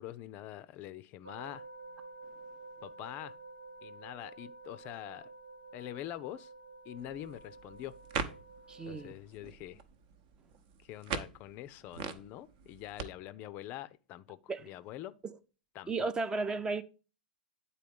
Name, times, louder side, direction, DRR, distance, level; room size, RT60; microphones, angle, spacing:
voice 1, 0.0-1.6 2.8-3.4 3.8-5.3 5.7-6.5 6.9-7.9 8.9-9.8 10.8-15.2 15.8-16.1, left 13 dB, 40° left, 0.4 m, -45 dB
sound 1, 1.2-9.1, right 3 dB, 85° right, 1.0 m, -51 dB
sound 2, 6.9-13.0, right 5 dB, 50° right, 0.9 m, -43 dB
voice 2, 8.7-9.1 14.5-14.6 15.2-15.3 15.9-16.8, right 3 dB, 15° right, 0.6 m, -34 dB
9.3 x 4.2 x 5.2 m
figure-of-eight pair, 100°, 5 cm